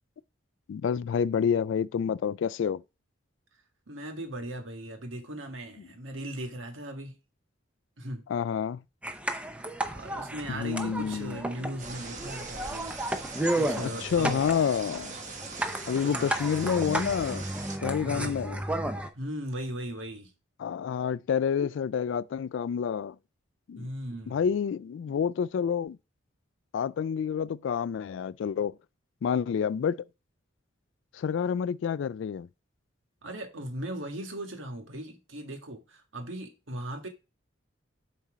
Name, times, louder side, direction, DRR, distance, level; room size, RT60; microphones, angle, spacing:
voice 1, 0.7-2.8 8.3-8.8 10.5-11.4 13.6-15.2 15.9-17.4 17.8-18.6 20.6-23.2 23.7-23.9 24.3-26.0 26.7-28.8 29.2-30.0 31.1-32.5, left 7 dB, 70° left, 0.3 m, -28 dB
voice 2, 3.9-7.1 8.0-8.2 9.9-14.5 16.0-16.4 18.0-18.4 19.1-20.3 23.7-24.5 33.2-37.1, right 1 dB, 85° right, 1.6 m, -38 dB
sound 1, 9.0-19.1, right 1 dB, 5° right, 0.6 m, -33 dB
sound 2, 11.8-17.8, right 4 dB, 40° right, 1.2 m, -41 dB
7.3 x 4.3 x 4.9 m
head